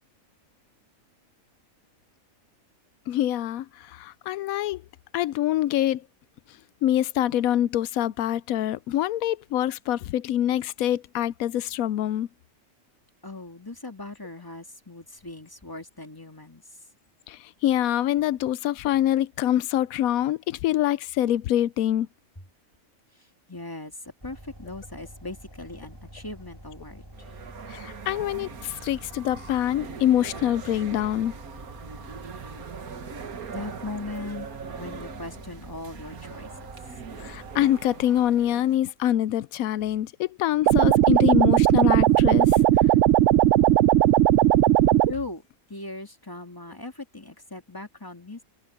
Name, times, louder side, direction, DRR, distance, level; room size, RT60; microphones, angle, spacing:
voice 1, 3.1-4.8 5.1-6.0 6.8-12.3 17.3-22.1 27.7-31.3 37.2-42.6, left 12 dB, 80° left, 1.0 m, -25 dB
voice 2, 13.2-16.8 23.2-27.4 33.5-34.5 34.8-36.5 45.1-45.4 45.7-48.4, left 2 dB, 15° left, 2.4 m, -39 dB
sound 1, 24.2-37.6, equal, 15° right, 2.8 m, -47 dB
sound 2, 27.1-38.8, right 6 dB, 90° right, 1.9 m, -41 dB
sound 3, 40.7-45.1, right 13 dB, 65° right, 0.8 m, -18 dB
omnidirectional pair, 1.5 m